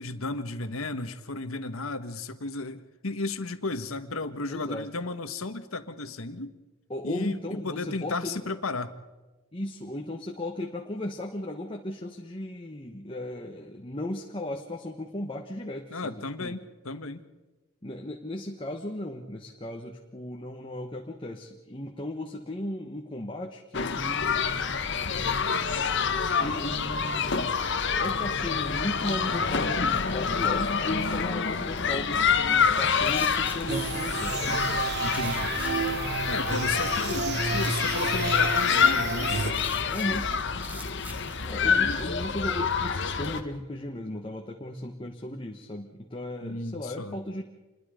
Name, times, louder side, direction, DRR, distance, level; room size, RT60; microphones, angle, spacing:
voice 1, 0.0-6.6 7.0-8.9 15.9-17.2 35.0-35.5 36.3-39.4 41.6-42.0 46.4-47.2, left 2 dB, 80° left, 9 dB, 1.5 m, -34 dB
voice 2, 4.5-4.9 6.9-8.6 9.5-16.6 17.8-24.5 26.4-27.6 28.0-34.9 39.9-40.3 41.5-47.4, left 1 dB, 25° left, 1 dB, 1.4 m, -36 dB
sound 1, 23.7-43.4, left 6 dB, 55° left, 1.4 m, -27 dB
sound 2, 32.9-41.5, right 1 dB, 10° right, 1.7 m, -47 dB
sound 3, 33.7-39.5, right 4 dB, 50° right, 1.3 m, -31 dB
28.0 x 21.5 x 5.1 m, 1.1 s
head